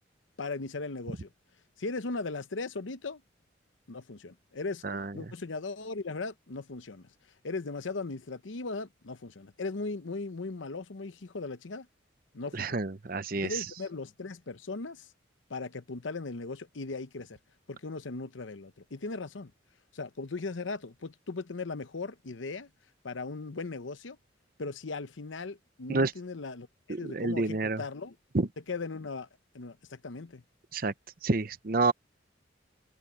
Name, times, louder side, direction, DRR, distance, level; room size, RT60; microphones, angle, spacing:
voice 1, 0.4-1.3 1.8-3.2 3.9-4.8 5.1-7.1 7.4-11.9 12.3-12.8 13.3-15.1 15.5-17.4 17.7-19.5 19.9-22.7 23.0-24.2 24.6-28.2 28.7-29.3 29.5-30.4, left 3 dB, 90° left, 0.9 m, -38 dB
voice 2, 12.5-13.6 25.9-26.1 26.9-27.8 28.3-28.5 30.7-30.9 31.2-31.9, right 3 dB, 50° right, 0.8 m, -29 dB
head